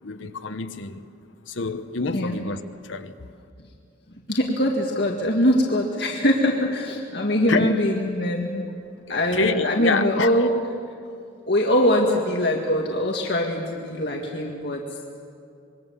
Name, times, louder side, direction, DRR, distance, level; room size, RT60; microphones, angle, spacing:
voice 1, 0.0-1.0 1.5-3.1 7.5-7.7 9.3-10.3, left 3 dB, 80° left, 1.2 m, -26 dB
voice 2, 2.1-2.4 4.3-8.6 9.1-10.5 11.5-14.8, left 1 dB, 55° left, 2.0 m, -22 dB
26.0 x 22.5 x 7.2 m
head